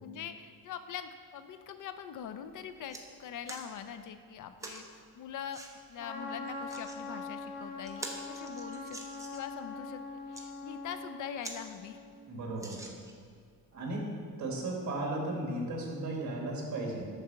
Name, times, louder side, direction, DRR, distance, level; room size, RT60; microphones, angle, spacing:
voice 1, 0.0-5.6 5.9-10.0 10.3-12.0, left 8 dB, 60° left, 10 dB, 0.5 m, -43 dB
sound 1, 2.2-2.3 2.6-3.0 3.5-3.7 4.6-4.8 5.5-5.7 6.5-7.0 7.4-7.5 7.8-9.5 10.1-10.5 11.0-11.1 11.4-11.6 11.9-12.0 12.6-13.3 13.9-14.0, right 2 dB, 10° right, 0.7 m, -45 dB
Trumpet, 6.0-12.2, left 3 dB, 80° left, 1.0 m, -43 dB
voice 2, 12.3-12.8 13.7-17.1, right 2 dB, 55° right, -1 dB, 1.9 m, -35 dB
6.6 x 4.8 x 6.8 m, 2.2 s
cardioid pair, 145°, 36 cm